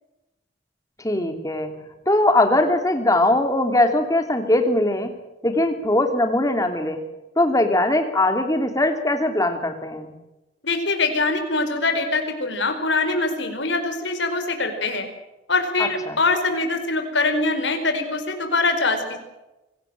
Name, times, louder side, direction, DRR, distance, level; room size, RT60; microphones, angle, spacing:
voice 1, 1.0-1.7 2.1-5.1 5.4-7.0 7.4-10.1 15.8-16.2, left 1 dB, 20° left, 6 dB, 3.0 m, -20 dB
voice 2, 10.6-15.1 15.5-19.2, left 3 dB, 70° left, 6 dB, 4.7 m, -23 dB
25.0 x 17.5 x 7.6 m, 1.0 s
head